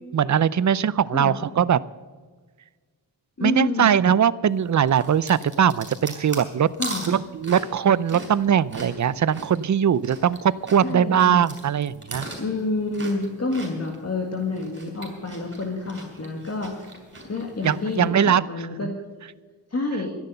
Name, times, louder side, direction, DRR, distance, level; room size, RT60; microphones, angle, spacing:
voice 1, 0.1-1.8 3.4-6.7 7.1-12.3 17.6-18.4, right 8 dB, 45° right, 18 dB, 0.5 m, -21 dB
voice 2, 3.4-3.9 6.8-7.1 10.8-11.5 12.4-17.0 17.3-18.9 19.7-20.1, left 3 dB, 35° left, 1 dB, 1.9 m, -28 dB
sound 1, 4.9-10.4 10.7-14.0 14.4-18.0, right 2 dB, 25° right, 4.8 m, -38 dB
13.0 x 10.5 x 6.7 m, 1.5 s
wide cardioid pair, 100°, 43 cm